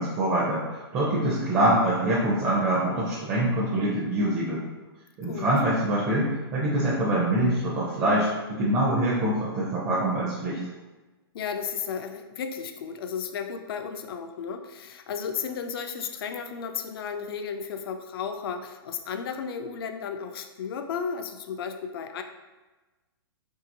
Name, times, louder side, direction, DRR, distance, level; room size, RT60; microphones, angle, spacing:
voice 1, 0.0-4.6 5.2-10.6, right 1 dB, 25° right, -7 dB, 0.5 m, -25 dB
voice 2, 11.3-22.2, left 6 dB, 65° left, 7 dB, 0.4 m, -34 dB
2.8 x 2.7 x 2.7 m, 1.2 s
hypercardioid pair, 150°, 13 cm